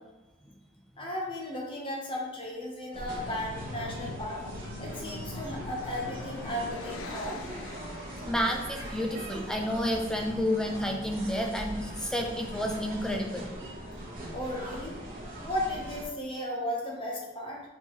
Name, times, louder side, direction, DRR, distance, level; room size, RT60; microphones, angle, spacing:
voice 1, 1.0-4.4 4.8-7.4 14.3-15.0 15.4-17.6, left 1 dB, 25° left, -2 dB, 0.8 m, -35 dB
sound 1, 2.9-16.0, right 1 dB, 45° right, 1.1 m, -41 dB
sound 2, 3.1-8.5, left 3 dB, 85° left, 0.4 m, -43 dB
voice 2, 8.2-13.5, equal, 5° left, 2 dB, 0.4 m, -30 dB
4.3 x 3.6 x 3.0 m, 1.1 s
head